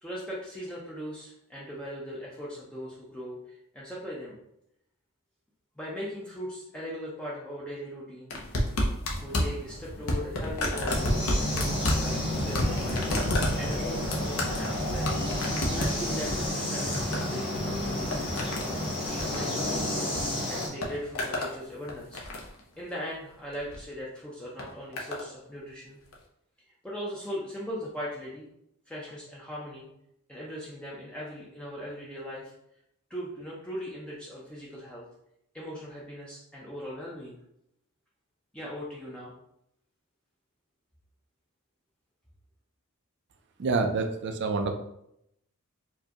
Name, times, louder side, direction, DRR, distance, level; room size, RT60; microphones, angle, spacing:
voice 1, 0.0-4.4 5.8-8.3 9.2-11.1 11.4-13.1 13.6-15.2 15.7-18.6 19.1-19.8 20.5-22.2 22.8-26.0 26.8-28.5 28.9-29.9 30.3-32.5 33.1-35.0 35.5-37.4 38.5-39.3, equal, 5° left, -6 dB, 0.5 m, -39 dB
sound 1, 8.3-20.2 20.5-21.5 21.9-22.6 23.5-23.8 24.6-25.2 26.1-26.2, left 1 dB, 70° left, 0.7 m, -31 dB
sound 2, 10.9-20.7, left 1 dB, 25° left, 1.0 m, -31 dB
voice 2, 43.6-44.7, right 3 dB, 50° right, 5 dB, 0.4 m, -27 dB
4.5 x 2.2 x 2.8 m, 0.78 s
head